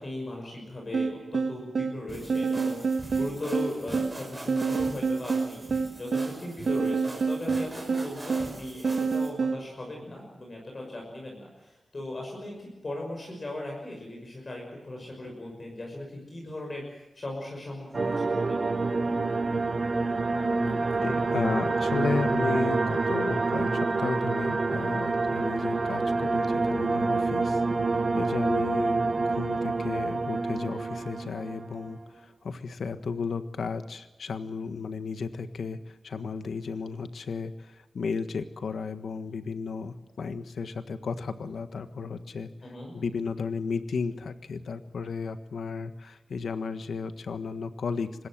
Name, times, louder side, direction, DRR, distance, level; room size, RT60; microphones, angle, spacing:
voice 1, 0.0-18.7 42.6-42.9, left 1 dB, 35° left, 0 dB, 6.0 m, -38 dB
sound 1, 0.9-9.6, right 4 dB, 65° right, 1.6 m, -28 dB
sound 2, 2.1-9.3, right 1 dB, 10° right, 5.4 m, -42 dB
sound 3, 17.9-31.9, right 3 dB, 35° right, 1.0 m, -27 dB
voice 2, 21.0-27.6 28.1-42.5 42.9-48.1, left 5 dB, 85° left, 10 dB, 1.5 m, -34 dB
26.0 x 20.5 x 7.7 m, 0.97 s
wide cardioid pair, 170°, 0 cm